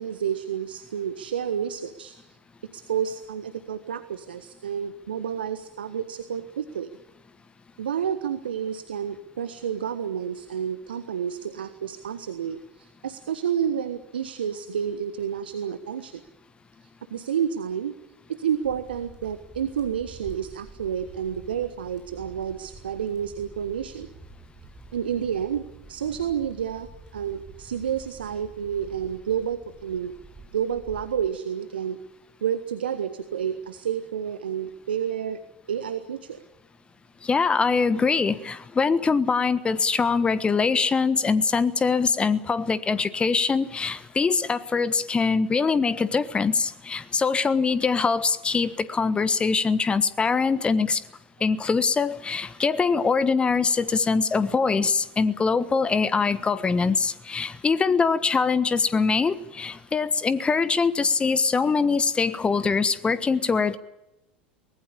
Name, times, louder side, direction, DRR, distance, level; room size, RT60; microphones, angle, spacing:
voice 1, 0.0-2.1 2.7-6.9 7.8-16.2 16.8-17.9 18.3-24.1 24.9-30.1 30.5-32.0 32.4-35.4 35.7-36.4, right 8 dB, 75° right, 11 dB, 1.3 m, -30 dB
sound 1, 18.6-31.3, right 3 dB, 15° right, 7.4 m, -48 dB
voice 2, 37.2-51.0 51.4-63.8, left 5 dB, 20° left, 16 dB, 1.3 m, -23 dB
24.5 x 19.5 x 8.6 m, 0.90 s
figure-of-eight pair, 80°, 5 cm